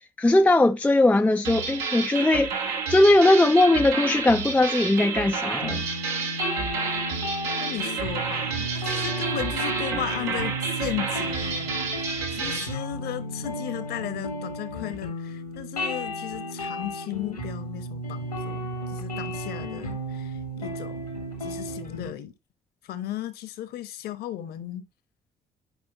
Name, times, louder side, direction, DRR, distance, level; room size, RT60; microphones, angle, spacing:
voice 1, 0.2-2.5 2.9-5.8, left 2 dB, 5° left, 0.5 m, -19 dB
sound 1, 1.4-12.7, right 5 dB, 70° right, 1.7 m, -30 dB
sound 2, 5.6-22.1, equal, 90° left, 2.0 m, -34 dB
voice 2, 7.6-21.0 21.4-22.3 22.8-24.9, left 12 dB, 55° left, 1.1 m, -35 dB
10.5 x 5.1 x 2.9 m
figure-of-eight pair, 50°, 19 cm